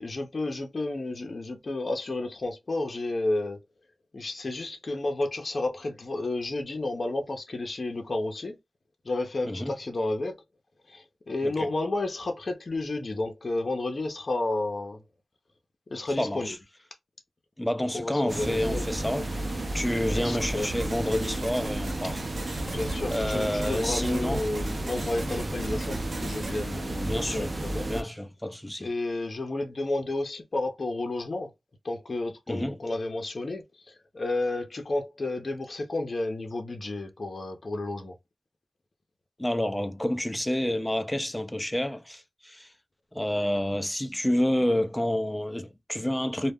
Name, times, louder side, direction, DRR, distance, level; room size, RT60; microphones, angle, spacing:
voice 1, 0.0-3.6 4.1-8.6 9.0-10.4 10.9-15.0 15.9-16.5 17.9-18.9 20.1-20.7 22.6-27.9 28.8-31.5 31.8-38.1, left 2 dB, 55° left, 0.6 m, -31 dB
voice 2, 16.2-16.6 17.6-19.3 19.7-22.2 22.6-22.7 23.1-24.4 26.9-27.6 27.9-28.9 32.5-32.8 39.4-42.7 43.1-46.5, left 1 dB, 10° left, 0.4 m, -29 dB
sound 1, 18.3-28.0, right 1 dB, 45° right, 0.6 m, -32 dB
sound 2, 20.4-26.7, right 2 dB, 70° right, 1.0 m, -41 dB
2.2 x 2.1 x 3.5 m
cardioid pair, 55°, 0 cm